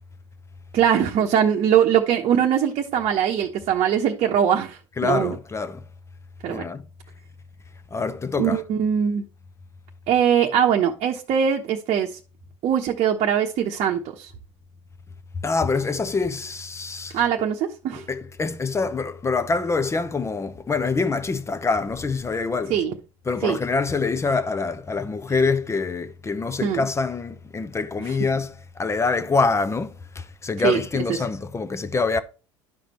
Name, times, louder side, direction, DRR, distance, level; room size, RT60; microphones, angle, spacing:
voice 1, 0.7-5.3 6.4-6.6 8.4-9.3 10.1-12.1 12.6-14.3 17.1-18.0 22.7-22.9 23.4-23.6 26.6-26.9 30.6-30.8, right 9 dB, 45° right, 1.0 m, -21 dB
voice 2, 5.0-5.8 6.5-6.8 7.9-8.6 15.4-17.2 18.1-22.8 23.3-32.2, left 4 dB, 20° left, 0.9 m, -25 dB
11.5 x 5.1 x 3.1 m
hypercardioid pair, 75°, 15 cm